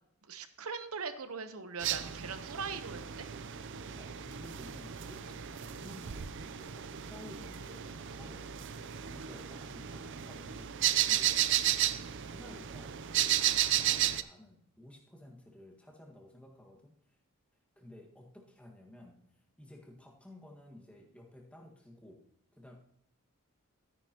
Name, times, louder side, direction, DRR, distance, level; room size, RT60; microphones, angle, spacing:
voice 1, 0.3-3.2, right 5 dB, 80° right, 10 dB, 0.9 m, -40 dB
sound 1, 1.8-14.2, right 11 dB, 60° right, 0.5 m, -33 dB
voice 2, 3.9-8.6 9.0-12.9 13.2-16.9 17.7-19.2 19.6-22.2 22.5-22.7, left 1 dB, 5° left, -1 dB, 1.6 m, -54 dB
13.0 x 9.9 x 2.9 m, 0.71 s
head